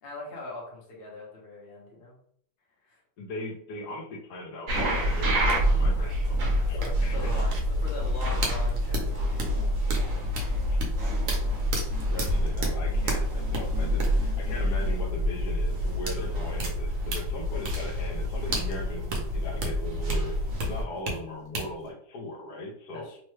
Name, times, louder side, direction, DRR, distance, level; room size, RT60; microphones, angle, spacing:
voice 1, 0.0-2.2 2.9-3.0 5.9-6.2 6.5-7.6 7.8-10.2 20.7-21.0 22.9-23.2, left 3 dB, 45° left, -2 dB, 0.9 m, -42 dB
voice 2, 3.2-7.3 10.7-10.8 12.0-19.0 19.3-23.1, left 1 dB, 75° left, -1 dB, 1.2 m, -39 dB
sound 1, 4.7-21.1 21.5-21.6, equal, 60° right, 1.0 m, -27 dB
3.1 x 2.1 x 3.1 m, 0.62 s
omnidirectional pair, 1.7 m